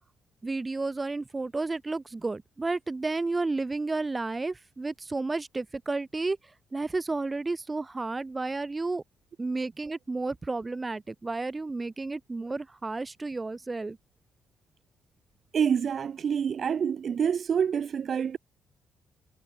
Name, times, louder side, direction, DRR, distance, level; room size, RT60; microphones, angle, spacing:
voice 1, 0.4-6.4 6.7-9.0 9.4-14.0, right 3 dB, 25° right, 4.2 m, -32 dB
voice 2, 15.5-18.4, right 7 dB, 55° right, 1.7 m, -27 dB
supercardioid pair, 60°, 0 cm